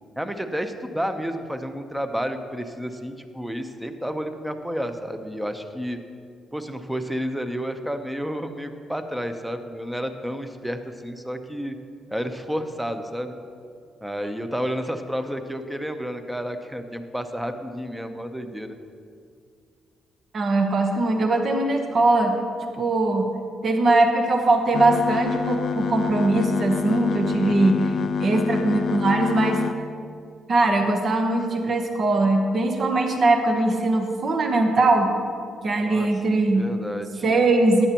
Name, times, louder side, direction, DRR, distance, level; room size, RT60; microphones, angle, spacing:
voice 1, 0.2-6.0 6.5-11.8 12.1-13.3 14.0-18.8 27.4-28.1 35.8-37.3, equal, 5° right, 7 dB, 0.8 m, -31 dB
voice 2, 20.3-22.4 22.8-23.3 23.6-27.9 28.2-29.6 30.5-35.1 35.6-36.7 37.2-37.9, right 2 dB, 45° right, 4 dB, 1.0 m, -21 dB
sound 1, 24.7-29.7, left 6 dB, 60° left, 0.4 m, -27 dB
14.0 x 9.8 x 3.0 m, 2.3 s
cardioid pair, 90°, 0 cm